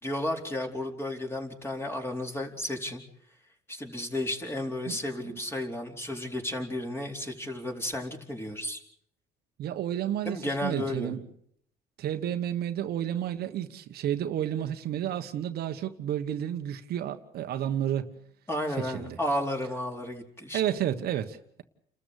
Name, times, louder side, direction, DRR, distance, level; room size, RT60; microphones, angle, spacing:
voice 1, 0.0-3.0 3.7-8.8 10.2-11.2 18.5-20.6, left 1 dB, 15° left, 4.3 m, -33 dB
voice 2, 9.6-11.2 12.0-18.1 18.8-19.2 20.5-21.6, right 10 dB, 70° right, 1.4 m, -31 dB
29.5 x 13.5 x 8.3 m
cardioid pair, 110°, 17 cm